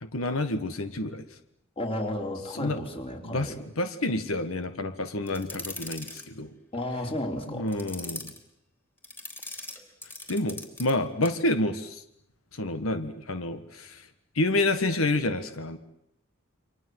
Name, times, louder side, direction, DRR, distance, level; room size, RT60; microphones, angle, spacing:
voice 1, 0.0-1.2 2.5-2.8 3.2-6.5 7.5-8.3 10.3-12.0 12.6-14.0 14.3-15.8, left 2 dB, 90° left, 9 dB, 1.6 m, -29 dB
voice 2, 1.8-3.6 6.7-7.8, left 1 dB, 30° left, 3 dB, 4.0 m, -33 dB
sound 1, 5.3-6.3 7.7-8.4 9.0-10.9 11.2-11.4, left 2 dB, 10° left, 3.5 m, -40 dB
29.0 x 25.0 x 7.9 m, 0.75 s
head